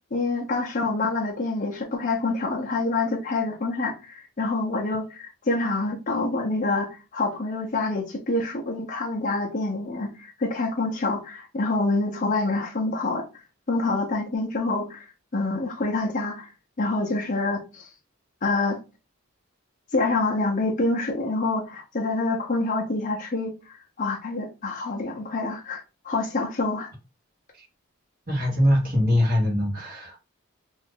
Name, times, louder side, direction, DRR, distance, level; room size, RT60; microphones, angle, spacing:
voice 1, 0.1-13.2 13.7-15.1 15.3-16.5 16.8-17.9 18.4-18.8 19.9-26.9, left 3 dB, 35° left, 0.5 m, -26 dB
voice 2, 28.3-30.2, left 1 dB, 40° right, 1.3 m, -22 dB
2.8 x 2.5 x 3.6 m
head